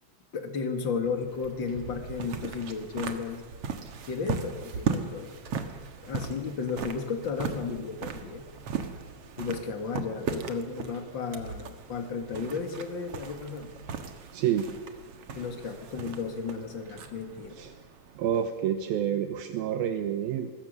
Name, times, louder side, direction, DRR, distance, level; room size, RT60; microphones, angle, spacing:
voice 1, 0.3-3.4 4.1-5.4 6.0-8.5 9.4-13.7 15.3-17.6, left 5 dB, 35° left, 6 dB, 2.3 m, -34 dB
sound 1, 1.0-18.6, right 5 dB, 50° right, 2.0 m, -38 dB
voice 2, 14.3-14.7 17.6-17.7 18.2-20.5, right 9 dB, 75° right, 8 dB, 2.8 m, -28 dB
25.0 x 21.0 x 6.7 m, 1.4 s
omnidirectional pair, 4.4 m